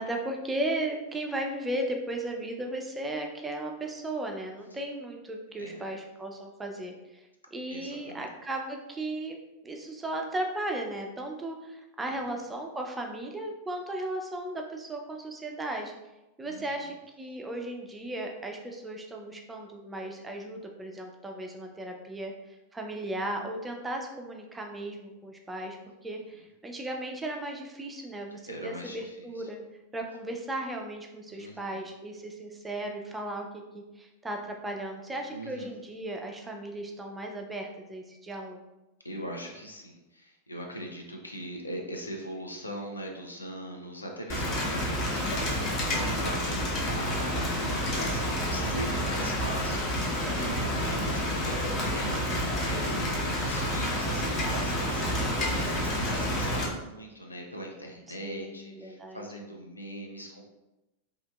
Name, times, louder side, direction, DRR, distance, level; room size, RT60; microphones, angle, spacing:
voice 1, 0.0-9.4 9.6-16.0 16.4-25.8 26.0-29.6 29.9-38.6 50.4-50.9 58.1-59.3, right 1 dB, 10° right, 2 dB, 0.4 m, -36 dB
voice 2, 5.5-5.9 7.7-8.3 12.1-12.2 16.4-16.6 28.5-29.3 31.3-31.7 35.3-35.7 39.0-60.4, equal, 80° left, 1 dB, 0.4 m, -41 dB
Rain, 44.3-56.6, equal, 35° left, 0.7 m, -29 dB
2.7 x 2.5 x 2.2 m, 0.97 s
figure-of-eight pair, 90°, 0 cm